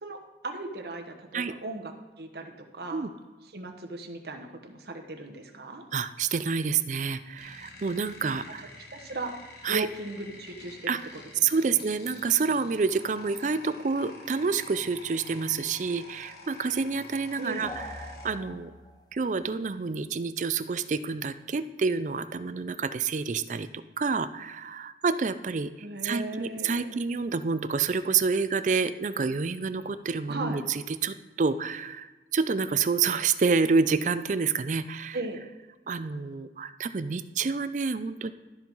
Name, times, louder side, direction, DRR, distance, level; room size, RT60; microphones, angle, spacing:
voice 1, 0.0-3.1 3.5-5.8 8.6-9.4 9.7-11.2 11.7-11.8 17.4-17.7 25.8-27.0 30.3-30.6 35.1-35.4, right 2 dB, 60° right, 3 dB, 1.0 m, -37 dB
voice 2, 5.9-8.7 9.6-9.9 10.9-11.0 11.4-18.7 19.1-23.7 24.0-35.2 35.9-38.3, right 5 dB, 45° right, 12 dB, 0.4 m, -28 dB
sound 1, 7.4-18.3, left 2 dB, 60° left, 1.4 m, -49 dB
sound 2, 17.6-19.1, left 1 dB, 25° left, 0.7 m, -42 dB
13.0 x 5.5 x 4.6 m, 1.2 s
head